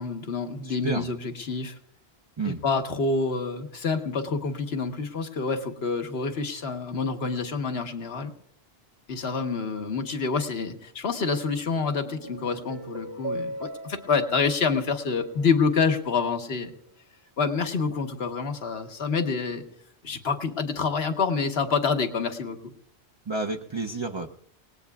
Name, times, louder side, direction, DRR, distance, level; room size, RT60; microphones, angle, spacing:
voice 1, 0.0-1.8 2.4-8.3 9.1-16.7 17.4-19.6 20.0-22.7, left 4 dB, 75° left, 6 dB, 1.5 m, -27 dB
voice 2, 0.6-1.1 2.4-2.6 23.3-24.3, right 3 dB, 30° right, 2 dB, 0.6 m, -30 dB
sound 1, 11.5-16.1, right 1 dB, 50° right, 1.1 m, -40 dB
29.0 x 18.5 x 2.4 m, 0.67 s
omnidirectional pair, 1.1 m